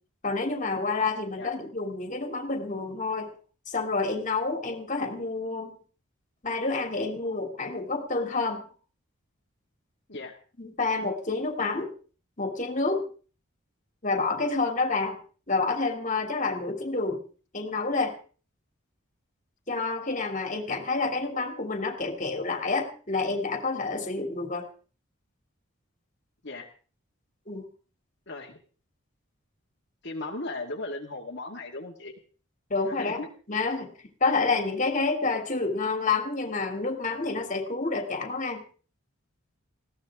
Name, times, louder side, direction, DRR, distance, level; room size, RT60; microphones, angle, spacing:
voice 1, 0.2-3.3 3.7-5.8 6.4-8.6 10.6-11.9 12.4-13.0 14.0-15.2 15.5-17.2 17.5-18.2 19.7-24.7 27.5-27.6 32.7-33.2 33.5-33.9 34.2-38.6, left 3 dB, 40° left, 4 dB, 3.0 m, -28 dB
voice 2, 28.3-28.6 30.0-32.1 33.0-33.3, left 2 dB, 55° left, -2 dB, 2.2 m, -37 dB
20.5 x 16.5 x 3.7 m, 0.40 s
head